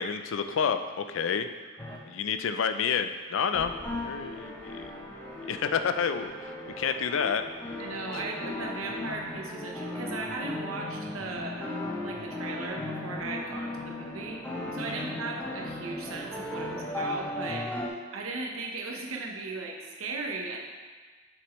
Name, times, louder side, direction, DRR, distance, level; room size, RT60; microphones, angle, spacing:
voice 1, 0.0-1.5 2.1-3.7 4.0-4.9 5.5-7.4 8.1-8.2 15.0-15.1, left 6 dB, 70° left, 9 dB, 0.4 m, -29 dB
sound 1, 1.8-2.0 3.5-17.9, left 1 dB, 10° left, 0.6 m, -37 dB
voice 2, 7.8-14.5 14.7-17.7 18.1-20.6, right 3 dB, 90° right, 0 dB, 0.9 m, -37 dB
6.5 x 6.2 x 3.0 m, 1.4 s
head